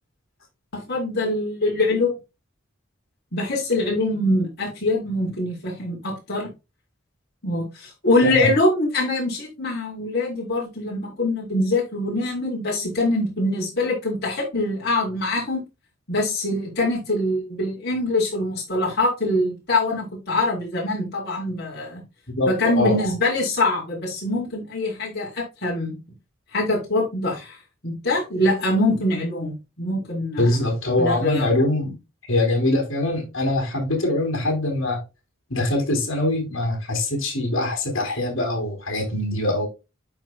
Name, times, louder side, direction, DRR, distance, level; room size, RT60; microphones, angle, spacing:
voice 1, 0.7-2.1 3.3-6.5 7.4-15.6 16.1-22.0 22.5-26.0 26.5-27.6 27.8-30.5 31.0-31.5, left 2 dB, 55° left, 4.5 m, -24 dB
voice 2, 22.4-23.1 30.4-31.9 32.3-35.0 35.5-39.7, left 1 dB, 75° left, 3.5 m, -23 dB
12.5 x 4.5 x 2.3 m
head